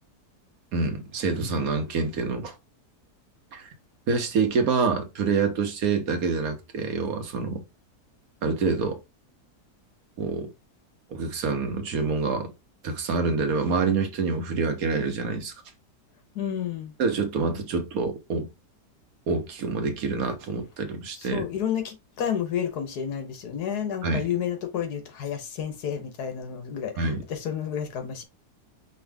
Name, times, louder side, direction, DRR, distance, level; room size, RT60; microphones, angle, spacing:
voice 1, 0.7-2.5 3.5-3.7 4.1-7.6 8.4-9.0 10.2-10.5 11.1-12.5 12.8-15.5 17.0-18.5 19.3-21.4 24.0-24.2 27.0-27.2, right 4 dB, 65° right, 1.2 m, -26 dB
voice 2, 16.3-16.9 21.1-28.2, left 8 dB, 75° left, 1.5 m, -31 dB
5.4 x 2.6 x 3.4 m
omnidirectional pair, 1.8 m